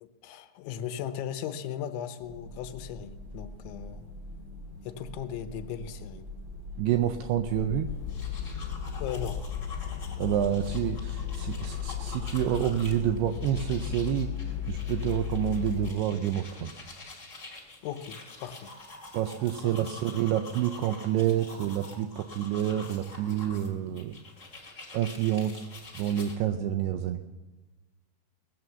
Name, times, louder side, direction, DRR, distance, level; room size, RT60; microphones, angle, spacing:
voice 1, 0.0-4.1 4.8-6.3 9.0-9.4 17.8-18.7 19.6-19.9, left 9 dB, 90° left, 9 dB, 3.2 m, -37 dB
sound 1, 2.2-14.8, left 1 dB, 60° right, 0.7 m, -44 dB
voice 2, 6.8-7.9 10.2-14.3 14.7-16.7 19.1-24.2 24.9-25.6 25.9-27.2, right 11 dB, 85° right, 7 dB, 2.3 m, -28 dB
sound 2, 7.4-15.9, left 10 dB, 70° left, 2.3 m, -35 dB
sound 3, 7.9-26.3, left 3 dB, 45° left, 0.9 m, -47 dB
20.0 x 7.0 x 7.8 m, 1.2 s
omnidirectional pair, 5.3 m